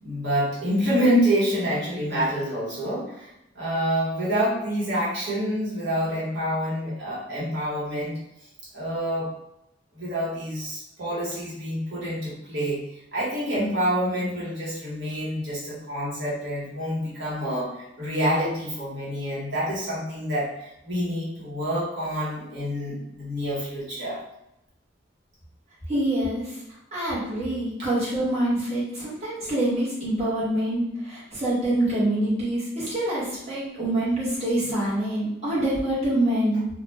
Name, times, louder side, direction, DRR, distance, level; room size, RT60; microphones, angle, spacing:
voice 1, 0.0-3.3 3.5-8.2 8.7-9.3 9.9-24.2, equal, 75° right, -8 dB, 1.2 m, -27 dB
voice 2, 25.9-26.6 26.9-36.7, right 1 dB, 35° right, -9 dB, 1.0 m, -25 dB
2.4 x 2.1 x 3.2 m, 0.84 s
head